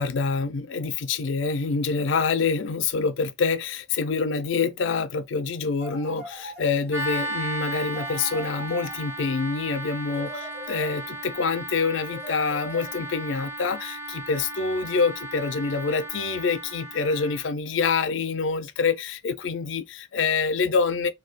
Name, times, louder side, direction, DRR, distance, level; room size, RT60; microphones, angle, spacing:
voice 1, 0.0-21.1, left 4 dB, 80° left, 0.4 m, -26 dB
sound 1, 5.8-7.1 7.9-9.4 10.1-11.3 12.1-13.3, equal, 30° right, 1.6 m, -41 dB
sound 2, 6.9-17.5, right 1 dB, 10° right, 0.4 m, -35 dB
2.7 x 2.2 x 3.4 m
head